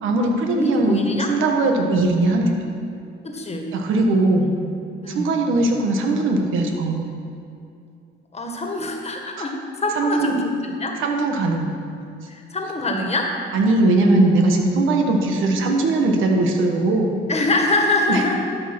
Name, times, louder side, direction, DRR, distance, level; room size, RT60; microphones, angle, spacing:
voice 1, 0.0-2.7 3.7-4.5 5.1-7.1 9.4-9.5 9.9-10.3 11.0-11.7 13.5-17.1 18.1-18.2, right 2 dB, 85° right, 2 dB, 1.4 m, -20 dB
voice 2, 0.6-1.3 3.2-3.7 5.0-5.3 8.3-11.0 12.3-13.3 17.3-18.3, left 2 dB, 30° left, 2 dB, 1.6 m, -24 dB
12.5 x 5.6 x 6.0 m, 2.5 s
cardioid pair, 90°, 20 cm